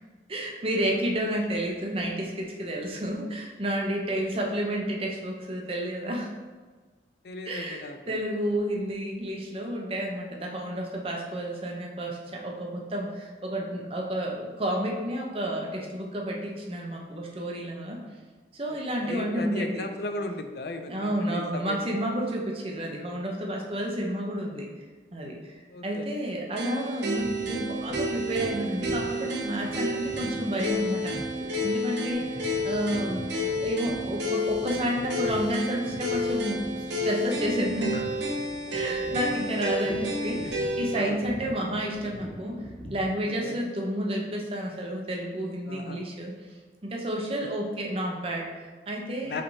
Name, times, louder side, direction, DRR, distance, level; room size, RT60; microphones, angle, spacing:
voice 1, 0.3-6.3 7.5-18.0 18.5-19.9 20.9-24.7 25.1-38.0 38.7-42.6 42.9-46.3 46.8-49.4, right 1 dB, 30° right, -1 dB, 0.7 m, -31 dB
voice 2, 7.2-8.2 19.0-22.1 25.7-26.1 38.8-38.9 40.9-41.2 43.4-43.6 45.7-46.0 47.4-47.5 49.2-49.4, left 2 dB, 60° left, 6 dB, 0.4 m, -36 dB
sound 1, 26.6-41.0, left 1 dB, 85° right, 0.8 m, -31 dB
sound 2, 27.0-43.1, equal, 5° left, 0.9 m, -43 dB
5.6 x 3.3 x 2.7 m, 1.4 s
head